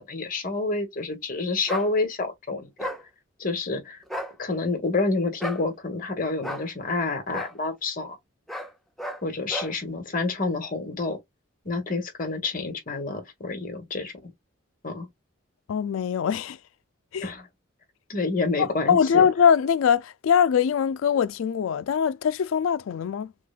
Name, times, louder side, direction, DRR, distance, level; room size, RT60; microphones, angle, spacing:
voice 1, 0.0-2.9 3.4-4.0 4.4-8.2 9.2-11.2 11.6-14.3 14.8-15.1 17.2-17.5 18.1-19.3, left 3 dB, 45° left, 1.4 m, -28 dB
sound 1, 1.7-1.9 2.8-3.0 4.0-4.3 5.4-5.6 6.4-6.7 7.3-7.5 8.5-8.7 9.0-9.2 9.5-9.7, equal, ahead, 0.6 m, -33 dB
voice 2, 15.7-16.6 17.1-17.3 18.6-23.3, left 7 dB, 85° left, 0.3 m, -22 dB
6.0 x 2.3 x 2.4 m
head